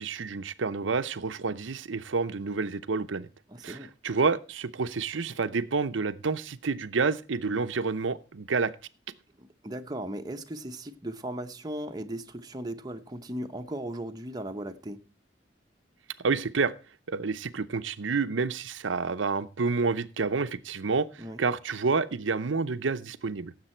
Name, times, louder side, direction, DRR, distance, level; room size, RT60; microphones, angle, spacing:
voice 1, 0.0-3.3 3.6-3.8 4.0-8.7 16.2-16.7 17.1-23.5, right 4 dB, 85° right, 0.7 m, -29 dB
voice 2, 3.5-3.9 9.4-15.0 21.2-21.4, right 1 dB, 20° right, 0.8 m, -37 dB
16.0 x 7.5 x 4.4 m
head